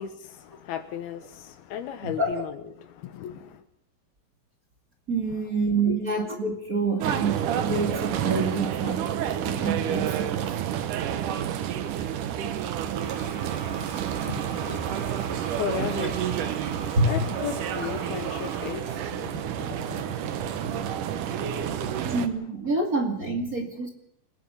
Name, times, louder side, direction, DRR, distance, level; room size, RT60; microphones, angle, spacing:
voice 1, 0.0-3.6 5.3-5.4 5.9-6.0 14.2-22.3, left 9 dB, 70° left, 10 dB, 2.7 m, -37 dB
voice 2, 5.1-10.5 14.6-14.8 17.0-17.1 22.0-23.9, right 3 dB, 30° right, 2 dB, 1.8 m, -27 dB
sound 1, 7.0-22.3, right 10 dB, 70° right, 2.0 m, -29 dB
Toilet flush, 12.9-18.7, right 4 dB, 55° right, 4.7 m, -40 dB
28.0 x 17.5 x 5.7 m, 0.75 s
omnidirectional pair, 5.1 m